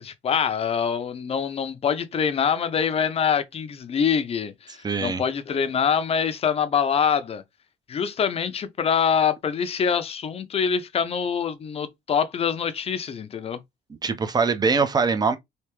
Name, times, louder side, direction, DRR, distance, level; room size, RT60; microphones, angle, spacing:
voice 1, 0.0-7.4 7.9-13.6, left 7 dB, 35° left, 0.6 m, -25 dB
voice 2, 4.8-5.2 14.0-15.4, right 4 dB, 25° right, 0.6 m, -22 dB
3.3 x 2.8 x 3.0 m
cardioid pair, 110°, 17 cm